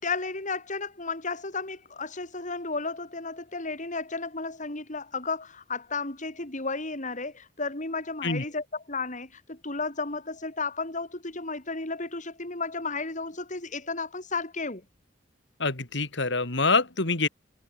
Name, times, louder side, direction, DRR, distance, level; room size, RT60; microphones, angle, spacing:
voice 1, 0.0-14.9, left 3 dB, 40° left, 4.4 m, -33 dB
voice 2, 15.6-17.3, left 3 dB, 65° left, 3.2 m, -25 dB
head